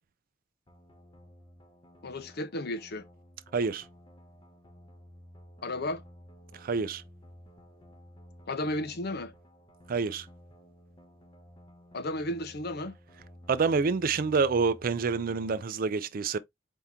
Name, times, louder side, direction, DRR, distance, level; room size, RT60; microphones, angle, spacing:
sound 1, 0.7-15.6, equal, 25° left, 0.8 m, -54 dB
voice 1, 2.0-3.0 5.6-6.0 8.5-9.3 11.9-12.9, left 1 dB, 60° left, 0.7 m, -33 dB
voice 2, 3.5-3.8 6.6-7.0 9.9-10.3 13.5-16.4, right 4 dB, 50° right, 0.4 m, -27 dB
4.5 x 2.8 x 3.6 m
head